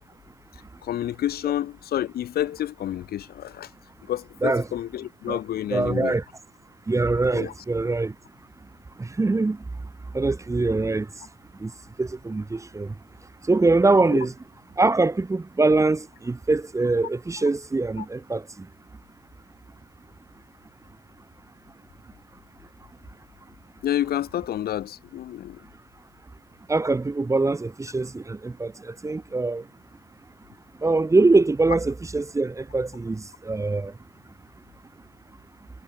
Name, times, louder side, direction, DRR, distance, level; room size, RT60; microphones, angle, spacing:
voice 1, 0.8-3.7 4.1-6.1 7.3-7.5 14.1-14.2 18.0-18.1 23.8-25.6, left 12 dB, 75° left, 3.4 m, -29 dB
voice 2, 5.7-6.2 6.9-8.1 9.0-9.6 10.1-11.1 11.6-11.7 12.0-12.9 13.4-14.3 14.8-18.7 26.7-29.6 30.8-33.9, right 3 dB, 20° right, 1.8 m, -23 dB
cardioid pair, 105°, 16 cm